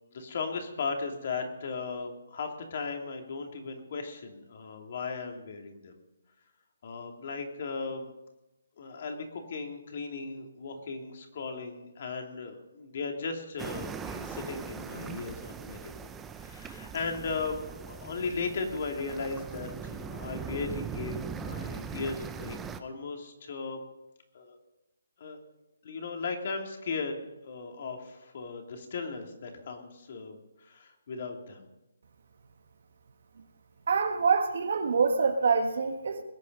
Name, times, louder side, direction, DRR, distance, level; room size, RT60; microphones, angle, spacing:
voice 1, 0.1-6.0 6.8-8.1 8.8-15.9 16.4-23.8 24.3-24.6 25.2-25.4 25.8-27.2 27.4-31.7, left 4 dB, 45° left, 3 dB, 2.7 m, -37 dB
sound 1, 13.6-22.8, right 6 dB, 10° right, 0.6 m, -40 dB
voice 2, 33.9-36.2, right 5 dB, 60° right, 6 dB, 1.5 m, -25 dB
21.0 x 8.6 x 5.4 m, 0.96 s
hypercardioid pair, 160°, 0 cm